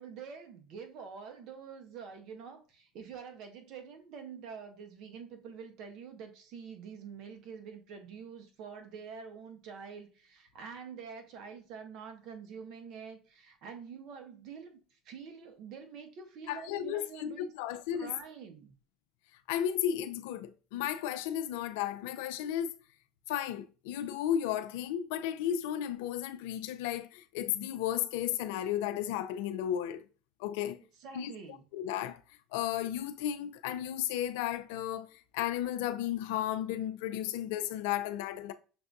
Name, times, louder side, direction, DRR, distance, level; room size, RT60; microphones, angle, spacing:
voice 1, 0.0-17.4 17.9-18.7 31.0-31.6, right 6 dB, 65° right, 0.9 m, -46 dB
voice 2, 16.5-18.1 19.5-22.7 23.3-30.1 30.4-30.8 31.1-31.3 31.7-32.2 32.5-38.5, left 11 dB, 80° left, 0.4 m, -34 dB
6.5 x 2.6 x 2.3 m
supercardioid pair, 85°, 0 cm